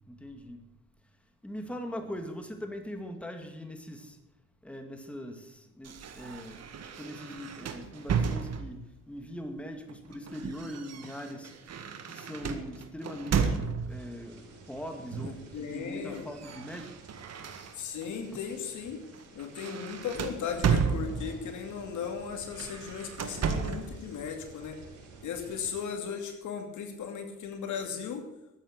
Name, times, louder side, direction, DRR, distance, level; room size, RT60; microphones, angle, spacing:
voice 1, 0.1-0.7 1.4-4.2 4.6-6.6 7.0-16.9, equal, 5° left, 5 dB, 2.2 m, -41 dB
sound 1, 5.8-8.9 9.9-14.1 15.1-15.5 15.8-18.1 18.6-18.8 19.1-21.5 22.4-23.9, right 6 dB, 55° right, 1.7 m, -33 dB
sound 2, 13.9-25.8, right 4 dB, 85° right, 6.8 m, -52 dB
voice 2, 15.2-16.2 17.8-19.0 19.3-24.8 25.2-28.2, left 7 dB, 75° left, 4 dB, 2.6 m, -37 dB
13.5 x 9.2 x 8.1 m, 0.88 s
cardioid pair, 90°, 30 cm